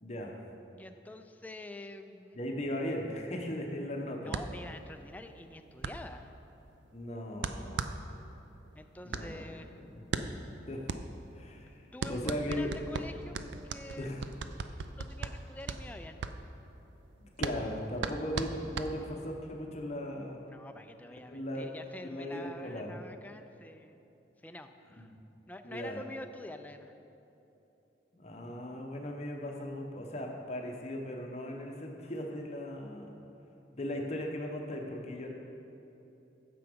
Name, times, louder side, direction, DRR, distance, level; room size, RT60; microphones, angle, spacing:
voice 1, 0.0-0.4 2.3-4.4 6.9-7.8 9.0-9.6 9.9-10.0 10.7-10.9 11.3-12.7 14.0-14.2 17.4-20.4 21.3-21.7 22.0-23.0 25.0-25.1 25.6-26.0 28.1-33.2 33.7-35.3, left 1 dB, 35° left, 1 dB, 0.8 m, -38 dB
voice 2, 0.8-2.4 4.2-6.3 8.8-9.8 11.9-14.3 15.0-16.2 20.5-24.0 24.4-25.1 25.5-27.0, left 1 dB, 10° left, 7 dB, 0.3 m, -47 dB
sound 1, 4.3-19.4, right 4 dB, 75° right, 0.4 m, -39 dB
9.4 x 6.9 x 5.2 m, 3.0 s
head